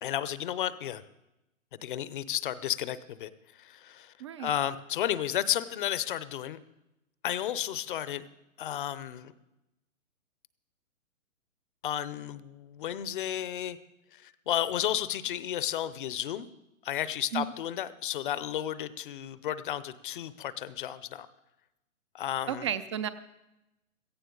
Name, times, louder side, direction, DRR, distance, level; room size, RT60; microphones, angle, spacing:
voice 1, 0.0-1.0 1.8-3.3 3.6-4.1 4.4-6.6 7.2-8.2 8.6-9.3 11.8-13.8 14.1-16.5 16.8-21.3 22.1-22.7, left 11 dB, 40° left, 16 dB, 0.7 m, -32 dB
voice 2, 4.2-4.5 17.3-17.5 22.5-23.1, right 9 dB, 25° right, 14 dB, 0.4 m, -32 dB
17.0 x 15.0 x 3.9 m, 0.93 s
hypercardioid pair, 140°, 40 cm